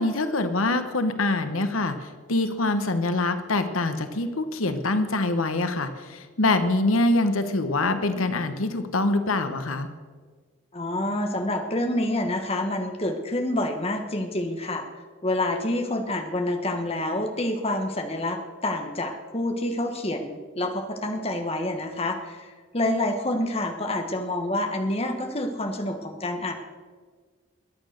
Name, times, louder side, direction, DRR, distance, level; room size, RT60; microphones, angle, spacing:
voice 1, 0.0-9.9, left 2 dB, 85° left, 9 dB, 1.1 m, -25 dB
voice 2, 10.7-14.9 15.2-26.5, left 1 dB, 30° left, 5 dB, 1.4 m, -28 dB
22.5 x 8.7 x 6.6 m, 1.5 s
head